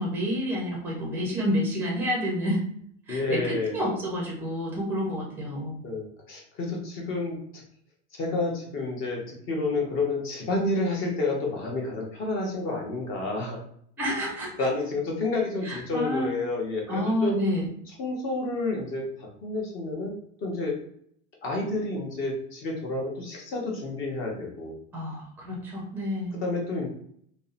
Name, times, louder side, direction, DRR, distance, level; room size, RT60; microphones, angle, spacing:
voice 1, 0.0-2.6 3.1-5.8 14.0-14.5 15.6-16.3 16.9-17.7 24.9-26.4, equal, 5° right, -2 dB, 0.4 m, -29 dB
voice 2, 3.1-3.8 5.8-7.6 8.2-13.6 14.6-17.4 18.0-20.1 20.4-20.8 21.4-24.8 26.4-26.9, left 2 dB, 35° left, 0 dB, 0.7 m, -30 dB
2.6 x 2.0 x 2.4 m, 0.65 s
supercardioid pair, 150°, 39 cm